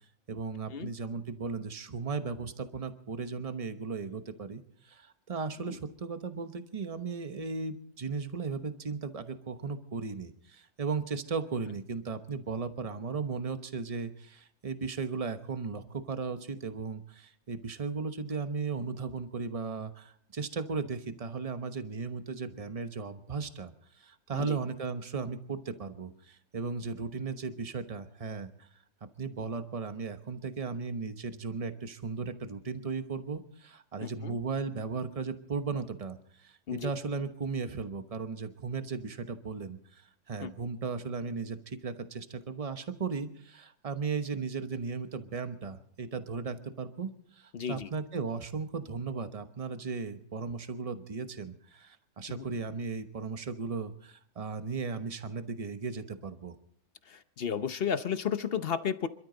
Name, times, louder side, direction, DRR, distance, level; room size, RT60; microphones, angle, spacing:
voice 1, 0.3-23.7 24.0-28.7 29.2-56.6, right 5 dB, 25° right, 9 dB, 0.9 m, -36 dB
voice 2, 34.0-34.4 36.7-36.9 40.4-40.5 47.5-47.9 52.3-52.4 57.1-59.1, left 7 dB, 50° left, 12 dB, 0.8 m, -33 dB
27.0 x 12.5 x 3.9 m, 0.65 s
omnidirectional pair, 1.6 m